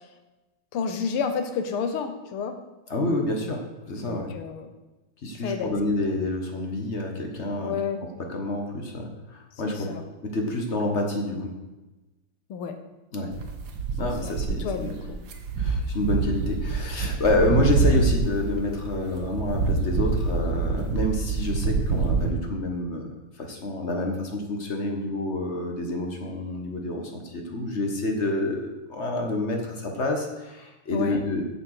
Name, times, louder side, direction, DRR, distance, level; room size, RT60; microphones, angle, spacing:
voice 1, 0.7-2.6 4.0-4.7 5.4-5.9 7.6-8.0 9.6-10.0 12.5-12.7 14.0-14.3 14.6-15.2 30.9-31.2, left 6 dB, 90° left, 7 dB, 1.8 m, -30 dB
voice 2, 2.9-4.3 5.2-7.7 8.3-9.9 10.2-11.5 13.1-13.3 14.0-14.9 15.6-31.5, left 2 dB, 40° left, 2 dB, 1.2 m, -28 dB
sound 1, 13.3-22.3, right 4 dB, 60° right, 1.4 m, -26 dB
7.4 x 7.1 x 6.5 m, 1.1 s
omnidirectional pair, 2.3 m